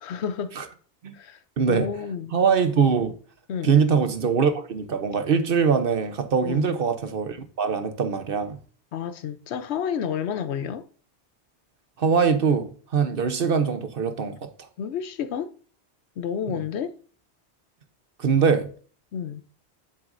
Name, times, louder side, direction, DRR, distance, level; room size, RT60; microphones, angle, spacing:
voice 1, 0.0-0.6 1.1-1.4 1.7-2.4 3.5-3.7 6.4-6.8 8.9-10.9 14.8-15.5 16.2-17.0 19.1-19.4, left 8 dB, 75° left, 0.9 m, -30 dB
voice 2, 1.6-1.9 2.3-3.1 3.6-8.6 12.0-14.5 16.5-16.6 18.2-18.7, right 6 dB, 55° right, 1.0 m, -22 dB
7.6 x 7.3 x 2.6 m
omnidirectional pair, 1.1 m